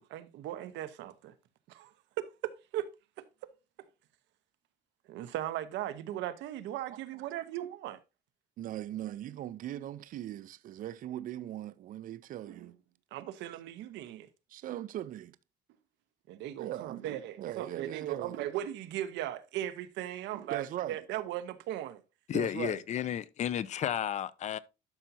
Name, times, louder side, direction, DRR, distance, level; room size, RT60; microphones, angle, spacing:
voice 1, 0.0-1.3 1.7-1.9 2.2-2.9 3.2-3.5 5.1-8.0 12.4-12.7 13.1-14.3 16.3-22.0, right 12 dB, 85° right, 0.9 m, -38 dB
voice 2, 8.6-12.8 14.5-15.4 16.6-17.0 17.4-18.3 20.5-21.0 22.3-22.8, right 12 dB, 50° right, 0.5 m, -39 dB
voice 3, 22.3-24.6, left 10 dB, 40° left, 0.5 m, -32 dB
12.0 x 5.8 x 2.7 m
cardioid pair, 150°, 18 cm